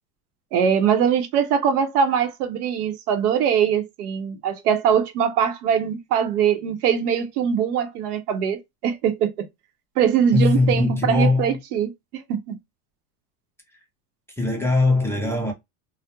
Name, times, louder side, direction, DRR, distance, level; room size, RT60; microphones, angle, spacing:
voice 1, 0.5-9.5 10.0-12.6, right 8 dB, 85° right, 0.8 m, -22 dB
voice 2, 10.3-11.6 14.4-15.5, left 2 dB, 5° left, 0.5 m, -20 dB
2.2 x 2.1 x 2.8 m
supercardioid pair, 120°, 44 cm